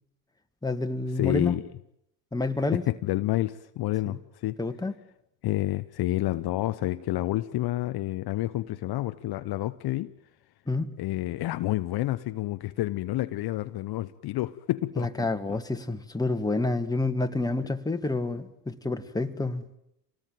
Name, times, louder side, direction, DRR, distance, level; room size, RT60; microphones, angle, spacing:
voice 1, 0.6-1.6 2.3-2.8 4.1-4.2 4.6-4.9 10.7-10.9 15.0-19.6, left 2 dB, 10° left, 2.0 m, -28 dB
voice 2, 1.2-1.6 2.7-4.6 5.4-10.1 11.0-15.6, left 16 dB, 50° left, 0.9 m, -29 dB
27.0 x 19.0 x 9.3 m
hypercardioid pair, 75°, 48 cm